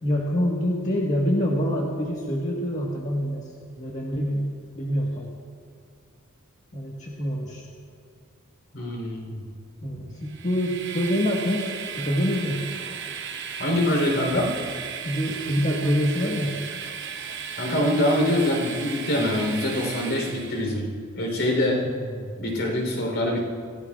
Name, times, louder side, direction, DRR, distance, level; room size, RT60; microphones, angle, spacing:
voice 1, 0.0-3.5 3.8-4.5 4.7-5.3 6.7-7.6 9.8-12.6 15.0-16.5 21.8-22.3, equal, 35° left, -3 dB, 1.5 m, -26 dB
voice 2, 8.7-9.5 9.9-10.0 13.6-14.6 17.6-20.9 21.1-21.8 22.4-23.4, left 1 dB, 60° left, 0 dB, 3.7 m, -24 dB
Train, 10.2-20.7, right 7 dB, 55° right, 1.1 m, -35 dB
27.5 x 16.0 x 2.4 m, 2.2 s
head